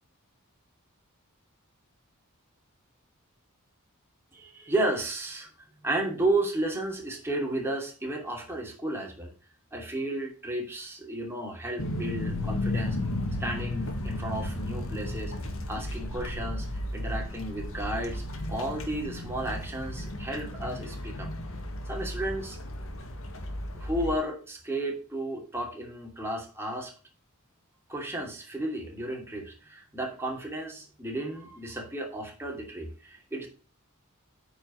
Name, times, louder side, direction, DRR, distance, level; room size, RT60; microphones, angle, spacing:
voice 1, 4.3-5.5 5.8-9.3 9.7-13.0 13.4-15.3 15.7-16.7 16.9-18.2 18.5-21.3 21.9-22.6 23.7-26.9 27.9-33.5, right 1 dB, 10° right, 0 dB, 2.8 m, -33 dB
sound 1, 11.8-24.2, left 1 dB, 65° left, 1.8 m, -34 dB
8.9 x 5.2 x 6.3 m, 0.36 s
head